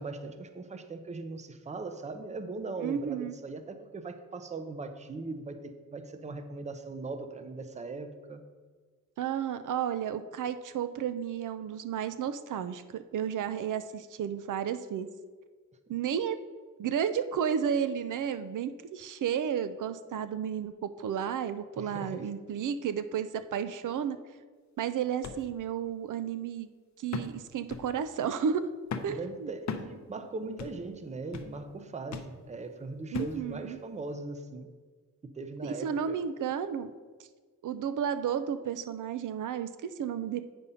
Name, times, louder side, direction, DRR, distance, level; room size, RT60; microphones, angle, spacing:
voice 1, 0.0-8.5 15.9-16.0 21.8-22.3 29.1-34.7 35.2-36.2, right 3 dB, 25° right, 8 dB, 0.5 m, -40 dB
voice 2, 2.8-3.3 9.2-15.1 15.9-16.4 16.8-24.2 24.8-26.7 27.0-28.7 29.0-29.5 33.1-33.8 35.6-36.9 37.6-40.4, right 8 dB, 85° right, 11 dB, 0.5 m, -32 dB
sound 1, 25.2-25.4 25.9-26.0 27.1-27.4 27.7-27.9 28.9-29.2 29.7-29.9 30.6-30.8 31.3-31.6 32.1-32.3 33.1-33.4 34.1-34.2, left 6 dB, 65° left, 0.6 m, -37 dB
8.4 x 5.3 x 5.5 m, 1.5 s
wide cardioid pair, 175°, 30 cm